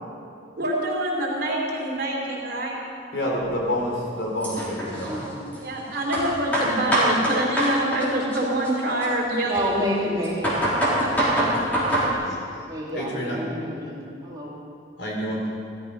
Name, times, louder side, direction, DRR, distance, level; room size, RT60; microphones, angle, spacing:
voice 1, 0.6-2.8 5.6-9.8 11.0-12.0, right 1 dB, 55° right, -3 dB, 4.0 m, -26 dB
voice 2, 3.1-5.1 12.9-13.4 15.0-15.4, equal, 65° left, -2 dB, 3.9 m, -28 dB
sound 1, 3.4-3.5 4.4-5.6 6.1-8.1 8.3-9.8 10.2-12.1, right 1 dB, 10° left, 3.9 m, -24 dB
voice 3, 5.0-5.5 9.4-10.6 12.2-12.4 12.7-14.5, equal, 20° right, -6 dB, 3.4 m, -29 dB
16.0 x 13.5 x 5.6 m, 2.5 s
head